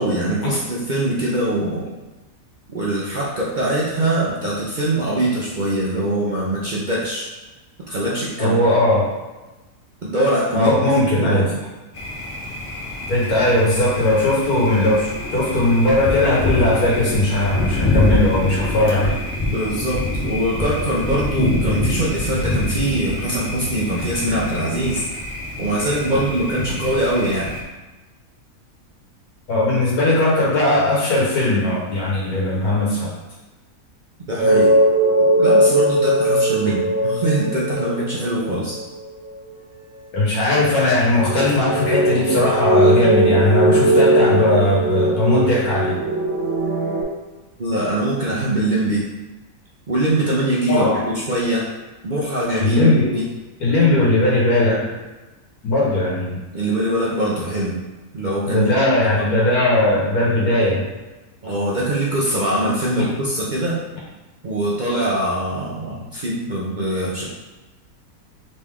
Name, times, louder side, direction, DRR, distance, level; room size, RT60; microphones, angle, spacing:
voice 1, 0.0-1.9 2.7-7.3 7.9-8.6 10.0-11.5 19.5-25.2 25.6-27.6 34.3-34.7 35.4-38.8 47.6-49.0 49.9-51.7 52.0-52.9 53.1-53.3 56.5-57.8 58.1-58.7 59.1-59.2 61.4-63.8 64.4-67.2, right 1 dB, 45° right, -6 dB, 0.6 m, -22 dB
voice 2, 8.4-9.1 10.5-11.5 13.1-19.1 29.5-33.2 40.1-46.0 50.7-51.0 52.6-53.1 53.6-54.8 55.6-56.4 58.4-60.8 63.0-63.1, left 1 dB, 80° left, -6 dB, 1.8 m, -18 dB
Thunder, 11.9-27.6, left 1 dB, 50° left, 0.4 m, -25 dB
sound 1, 34.4-39.5 41.2-47.0, right 1 dB, 65° right, 1.7 m, -19 dB
3.9 x 3.3 x 3.6 m, 1.1 s
omnidirectional pair, 1.6 m